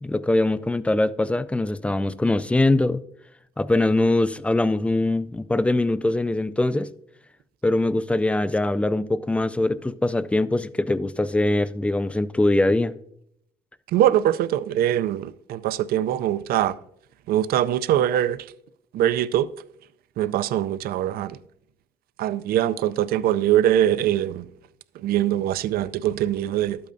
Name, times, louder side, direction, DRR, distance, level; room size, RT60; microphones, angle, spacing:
voice 1, 0.0-3.0 3.6-6.9 7.6-12.9, left 2 dB, 5° left, 0.3 m, -22 dB
voice 2, 13.9-16.7 17.3-18.4 18.9-19.5 20.2-21.4 22.2-24.4 25.0-26.8, right 11 dB, 65° right, 0.4 m, -22 dB
11.5 x 8.5 x 2.6 m
cardioid pair, 110°, 17 cm